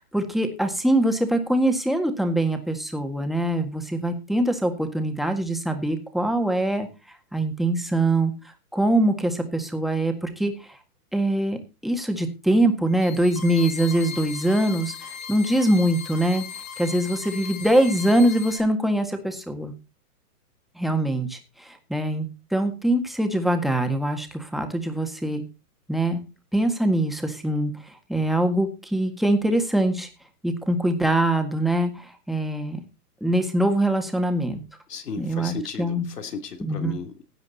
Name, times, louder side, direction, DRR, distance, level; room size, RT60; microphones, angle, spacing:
voice 1, 0.0-6.9 7.3-8.3 8.7-10.8 11.1-16.4 16.8-19.7 20.8-22.3 22.5-25.4 25.9-26.2 26.5-30.1 30.4-32.8 33.2-34.6 35.2-36.0 36.6-36.9, right 1 dB, ahead, 5 dB, 1.7 m, -23 dB
sound 1, 12.9-18.6, left 7 dB, 65° left, 6.1 m, -38 dB
voice 2, 34.9-37.2, left 5 dB, 85° left, 6 dB, 3.1 m, -35 dB
16.5 x 9.3 x 4.1 m, 0.30 s
hypercardioid pair, 145°, 46 cm